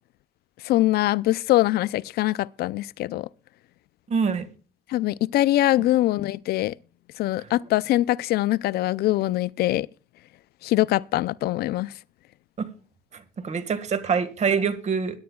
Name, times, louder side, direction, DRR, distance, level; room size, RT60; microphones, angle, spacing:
voice 1, 0.6-3.3 4.9-6.7 7.2-9.9 10.6-11.9, left 15 dB, 70° left, 0.5 m, -23 dB
voice 2, 4.1-4.5 7.4-7.5 12.6-12.7 13.1-15.2, right 6 dB, 40° right, 1.7 m, -25 dB
21.5 x 10.5 x 2.3 m
cardioid pair, 110°, 17 cm